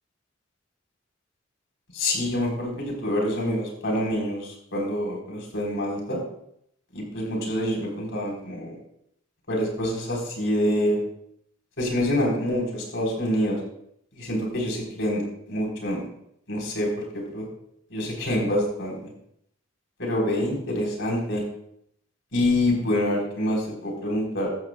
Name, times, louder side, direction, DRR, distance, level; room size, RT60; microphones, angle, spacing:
voice 1, 1.9-6.2 6.9-8.8 9.5-11.0 11.8-13.6 14.2-15.2 15.5-16.0 16.5-17.5 17.9-19.0 20.0-21.4 22.3-24.5, left 1 dB, 70° left, -1 dB, 3.8 m, -26 dB
14.0 x 14.0 x 2.2 m, 0.74 s
head